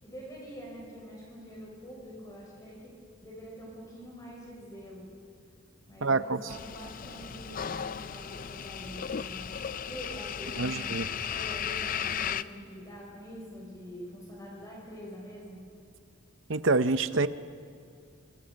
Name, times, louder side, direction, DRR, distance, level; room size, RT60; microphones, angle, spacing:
voice 1, 0.0-2.9 3.2-5.1 5.9-9.6 9.9-15.6, equal, 20° left, -4 dB, 5.7 m, -45 dB
voice 2, 6.0-6.4 10.6-11.1 16.5-17.3, right 3 dB, 65° right, 12 dB, 0.8 m, -26 dB
sound 1, 6.5-12.4, left 8 dB, 40° left, 0.5 m, -35 dB
27.0 x 25.0 x 5.3 m, 2.3 s
head